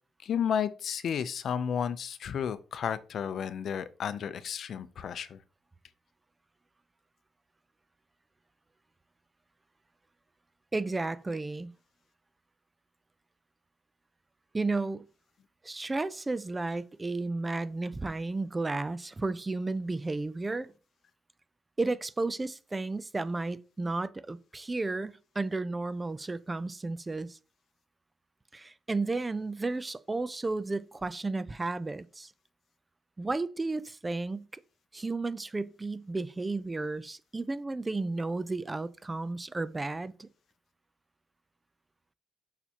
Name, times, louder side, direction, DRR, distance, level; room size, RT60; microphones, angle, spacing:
voice 1, 0.2-5.4, left 8 dB, 60° left, 0.6 m, -32 dB
voice 2, 10.7-11.7 14.5-15.0 15.6-20.7 21.8-27.4 28.5-32.3 33.2-34.5 34.9-40.3, right 3 dB, 20° right, 0.4 m, -33 dB
6.7 x 5.9 x 2.9 m
cardioid pair, 90°, 0 cm